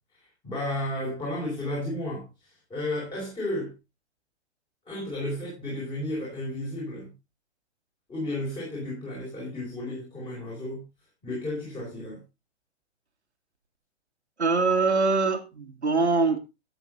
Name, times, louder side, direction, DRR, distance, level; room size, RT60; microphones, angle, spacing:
voice 1, 0.1-3.7 4.9-7.1 8.1-10.9 11.2-12.2, left 1 dB, 15° left, 5.2 m, -33 dB
voice 2, 14.4-16.4, right 3 dB, 80° right, 1.8 m, -23 dB
13.5 x 8.8 x 2.7 m
figure-of-eight pair, 115°, 34 cm